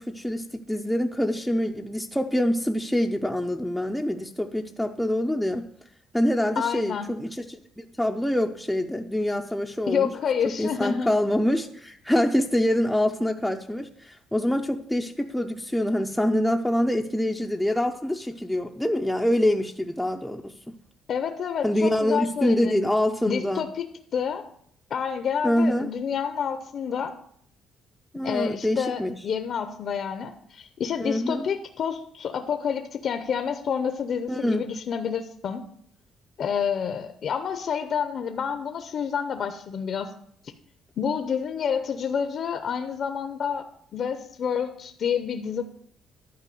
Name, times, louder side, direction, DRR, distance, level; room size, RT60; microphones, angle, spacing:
voice 1, 0.0-5.7 6.1-10.1 10.6-20.8 21.6-23.6 25.4-25.9 28.1-29.2 31.0-31.5 34.3-34.7, left 1 dB, ahead, 1 dB, 0.5 m, -25 dB
voice 2, 6.6-7.1 9.9-11.1 21.1-22.8 23.3-23.9 24.1-24.4 24.9-27.1 28.2-35.7 36.4-40.1 41.0-43.6 43.9-45.6, left 7 dB, 50° left, 7 dB, 0.7 m, -28 dB
11.0 x 4.7 x 7.7 m, 0.65 s
cardioid pair, 140°, 0 cm